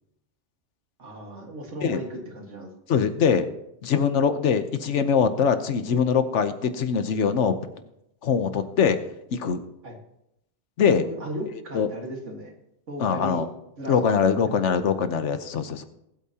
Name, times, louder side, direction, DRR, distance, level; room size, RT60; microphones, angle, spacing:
voice 1, 1.0-2.7 9.8-10.0 11.0-12.6 12.9-13.4 13.8-14.7, right 1 dB, 85° right, 2 dB, 2.2 m, -36 dB
voice 2, 2.9-3.5 3.8-7.6 8.2-9.0 9.3-9.6 10.8-11.1 11.7-11.9 13.0-13.5 13.9-15.8, left 6 dB, 80° left, 10 dB, 1.2 m, -22 dB
20.0 x 8.4 x 2.8 m, 0.82 s
omnidirectional pair, 1.2 m